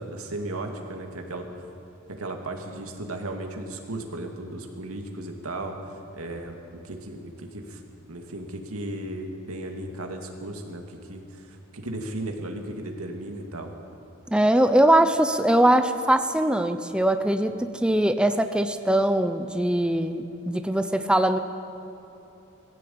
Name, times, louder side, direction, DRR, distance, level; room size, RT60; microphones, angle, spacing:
voice 1, 0.0-1.5 2.2-7.8 8.1-13.7, right 1 dB, 90° right, 3 dB, 2.5 m, -35 dB
voice 2, 14.3-21.4, right 1 dB, 5° right, 8 dB, 0.7 m, -21 dB
20.0 x 15.5 x 8.6 m, 2.9 s
head